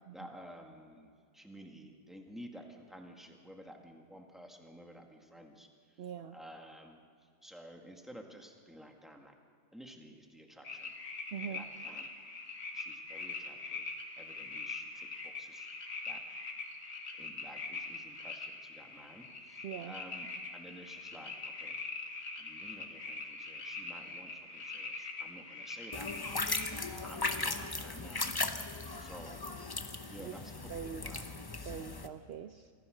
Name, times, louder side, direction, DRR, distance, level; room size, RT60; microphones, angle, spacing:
voice 1, 0.1-6.0 6.3-9.3 9.7-10.9 11.5-12.1 12.7-15.7 16.0-16.2 17.2-21.9 22.4-26.7 26.9-28.3 29.0-29.4 30.1-31.3, equal, ahead, 2 dB, 1.9 m, -53 dB
voice 2, 6.0-6.4 11.3-11.6 19.6-20.0 30.2-30.4 30.7-31.1 31.6-32.7, right 8 dB, 65° right, 9 dB, 0.6 m, -43 dB
sound 1, 10.6-26.7, left 3 dB, 55° left, 2.3 m, -43 dB
sound 2, 25.9-32.1, left 3 dB, 25° left, 0.5 m, -37 dB
25.5 x 15.5 x 6.5 m, 2.1 s
omnidirectional pair, 1.7 m